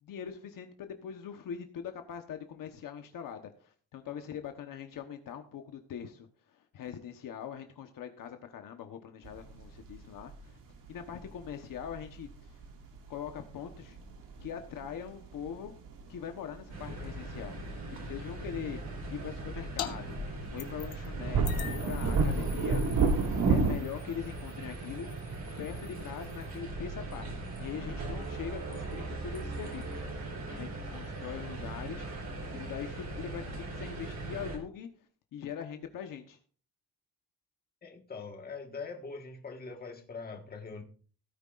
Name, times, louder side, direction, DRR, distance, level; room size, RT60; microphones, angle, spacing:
voice 1, 0.0-10.6 10.9-12.6 13.1-14.0 14.4-15.7 16.1-17.6 17.9-18.8 19.1-20.2 20.5-22.8 23.5-25.1 25.6-27.3 27.6-34.9 35.3-36.4, left 8 dB, 65° left, 6 dB, 1.2 m, -42 dB
sound 1, 9.2-23.8, right 4 dB, 65° right, 2.2 m, -33 dB
sound 2, 16.7-34.6, right 2 dB, 45° right, 3.7 m, -40 dB
sound 3, 19.8-19.9 20.2-21.1 21.4-26.5, left 10 dB, 85° left, 1.3 m, -45 dB
voice 2, 37.8-40.8, left 4 dB, 25° left, 4 dB, 1.6 m, -42 dB
17.0 x 9.5 x 2.5 m, 0.41 s
cardioid pair, 150°, 36 cm